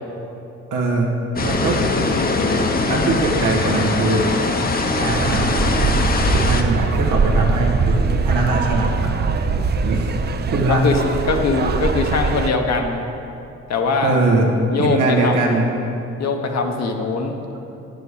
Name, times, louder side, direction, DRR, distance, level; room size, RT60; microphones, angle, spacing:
voice 1, 0.7-1.1 1.4-1.8 2.9-4.2 5.0-5.5 6.3-9.3 9.8-10.2 10.5-10.9 14.0-15.7, right 2 dB, 90° right, -1 dB, 1.5 m, -21 dB
sound 1, 1.4-6.6, left 3 dB, 30° left, 0.8 m, -21 dB
sound 2, 5.1-12.5, right 4 dB, 35° right, 0.5 m, -21 dB
voice 2, 10.7-13.1 13.7-14.2 14.7-15.4 16.2-17.4, left 4 dB, 60° left, 4 dB, 1.1 m, -21 dB
8.5 x 6.7 x 6.5 m, 2.8 s
cardioid pair, 90°, 30 cm